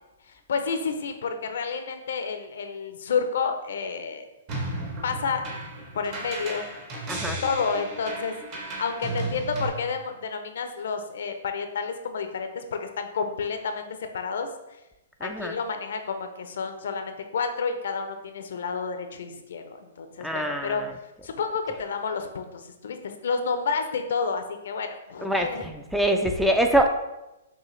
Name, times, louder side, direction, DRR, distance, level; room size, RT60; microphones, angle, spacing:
voice 1, 0.5-4.2 5.0-5.4 5.9-6.6 7.4-13.9 14.1-14.5 15.2-20.8 21.2-25.8, left 5 dB, 70° left, 7 dB, 0.5 m, -30 dB
sound 1, 4.5-9.7, right 2 dB, 40° right, 1.1 m, -34 dB
voice 2, 15.2-15.5 20.2-20.8 25.2-25.5 25.9-26.9, right 1 dB, ahead, 4 dB, 0.3 m, -23 dB
6.1 x 2.4 x 3.2 m, 0.96 s
hypercardioid pair, 130°, 0 cm